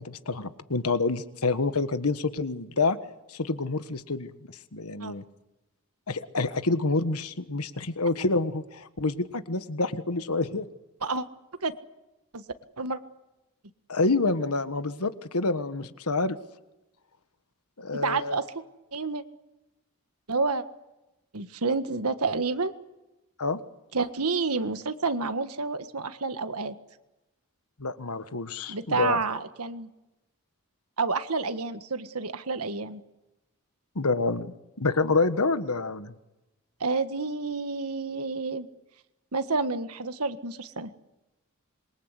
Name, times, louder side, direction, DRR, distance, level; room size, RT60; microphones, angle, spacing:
voice 1, 0.0-3.0 3.3-5.2 6.1-10.7 13.9-16.4 17.8-18.4 23.4-23.6 27.8-29.2 33.9-36.1, left 3 dB, 85° left, 11 dB, 1.5 m, -28 dB
voice 2, 18.0-18.4 18.9-19.2 20.3-20.6 21.3-22.7 23.9-26.7 28.7-29.9 31.0-33.0 36.8-38.7 39.3-40.9, right 4 dB, 90° right, 10 dB, 1.6 m, -29 dB
26.5 x 23.0 x 8.3 m, 1.0 s
head